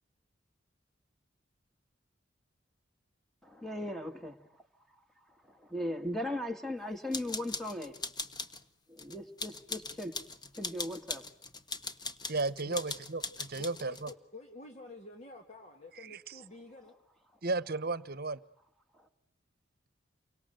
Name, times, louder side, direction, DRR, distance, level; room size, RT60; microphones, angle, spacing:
voice 1, 3.4-4.3 5.5-7.9 8.9-10.1 10.6-11.2, left 1 dB, ahead, 2.2 m, -37 dB
sound 1, 7.1-8.6 9.0-14.1, left 3 dB, 25° left, 1.4 m, -40 dB
voice 2, 12.3-14.1 16.0-16.4 17.4-18.4, right 3 dB, 55° right, 1.1 m, -34 dB
voice 3, 13.6-16.9, left 2 dB, 40° left, 2.7 m, -49 dB
29.5 x 24.5 x 8.1 m
head